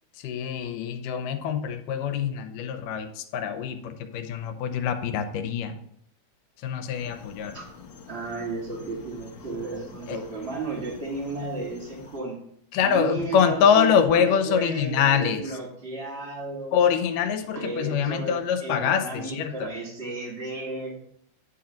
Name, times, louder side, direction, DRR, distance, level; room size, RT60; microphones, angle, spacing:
voice 1, 0.2-5.8 6.6-7.6 10.1-10.2 12.7-15.4 16.7-19.7, left 7 dB, 90° left, 8 dB, 2.3 m, -24 dB
sound 1, 6.9-12.2, left 6 dB, 70° left, 1.2 m, -47 dB
voice 2, 8.1-12.4 12.8-16.8 17.5-21.0, right 3 dB, 45° right, -4 dB, 0.8 m, -33 dB
9.8 x 3.8 x 5.8 m, 0.71 s
omnidirectional pair, 3.7 m